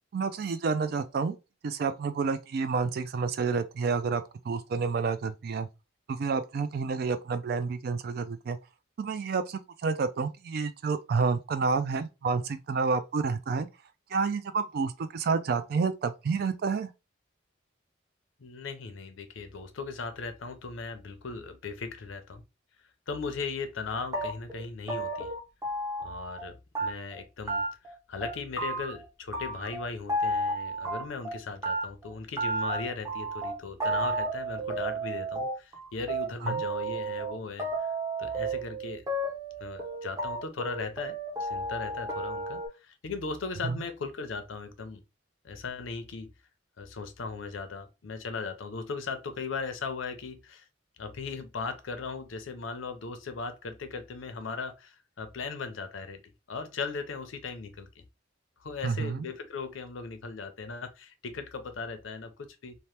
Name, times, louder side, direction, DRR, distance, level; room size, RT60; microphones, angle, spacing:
voice 1, 0.1-1.4 1.6-5.7 6.1-8.6 9.0-13.7 14.1-16.9 36.4-36.6 43.6-43.8 58.8-59.3, right 4 dB, 50° right, 0.3 m, -29 dB
voice 2, 18.4-22.4 23.1-25.3 26.0-39.0 39.6-45.0 45.4-46.3 46.8-50.7 51.0-58.0 58.6-62.8, left 4 dB, 80° left, 0.6 m, -38 dB
sound 1, 24.1-26.5 26.7-27.2 27.5-27.9 28.2-29.0 29.3-31.4 31.6-42.7, right 2 dB, 15° right, 0.6 m, -32 dB
2.8 x 2.1 x 3.1 m
head